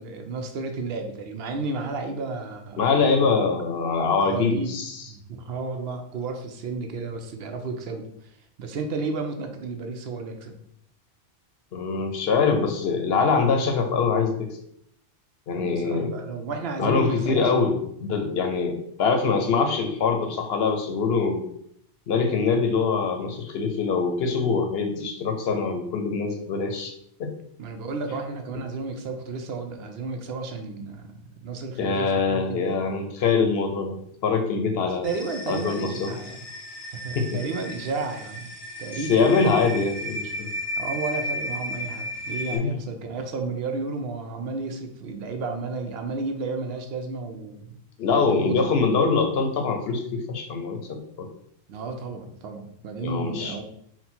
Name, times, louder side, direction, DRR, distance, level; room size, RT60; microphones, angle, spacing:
voice 1, 0.0-3.4 4.2-4.8 5.1-8.3 8.6-10.6 15.5-17.6 27.6-32.9 34.8-36.5 36.9-38.5 38.8-39.4 40.8-47.8 48.1-48.6 51.7-53.6, right 3 dB, 65° right, 5 dB, 0.8 m, -33 dB
voice 2, 2.8-5.0 11.7-14.5 15.5-16.1 16.8-21.4 22.1-26.9 27.2-27.3 31.8-35.1 35.5-36.2 37.1-37.4 39.1-40.5 42.5-42.8 48.0-51.3 53.0-53.6, left 4 dB, 65° left, 5 dB, 0.8 m, -24 dB
sound 1, 35.0-42.6, equal, 30° left, 0.5 m, -34 dB
4.1 x 2.2 x 4.2 m, 0.70 s
omnidirectional pair, 1.1 m